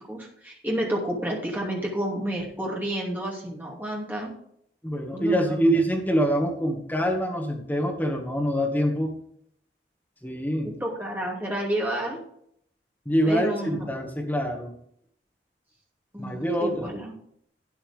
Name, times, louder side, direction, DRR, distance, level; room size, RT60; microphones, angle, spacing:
voice 1, 0.1-4.3 5.1-5.6 10.6-12.3 13.2-13.9 16.1-17.1, right 1 dB, 10° right, -3 dB, 2.7 m, -30 dB
voice 2, 4.8-9.1 10.2-10.8 13.1-14.7 16.2-16.9, equal, 10° left, 0 dB, 1.9 m, -25 dB
12.5 x 8.7 x 3.6 m, 0.68 s
head